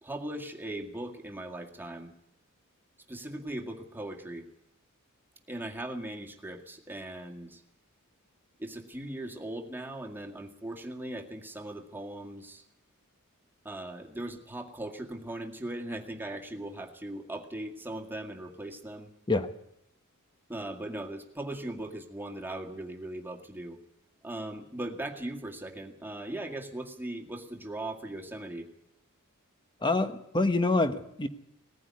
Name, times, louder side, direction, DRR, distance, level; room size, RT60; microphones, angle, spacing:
voice 1, 0.0-2.1 3.1-4.5 5.5-7.6 8.6-12.6 13.6-19.1 20.5-23.8 24.2-28.7, right 1 dB, 10° right, 2 dB, 2.0 m, -39 dB
voice 2, 29.8-31.3, left 2 dB, 20° left, 9 dB, 1.2 m, -26 dB
19.5 x 15.0 x 9.7 m, 0.79 s
head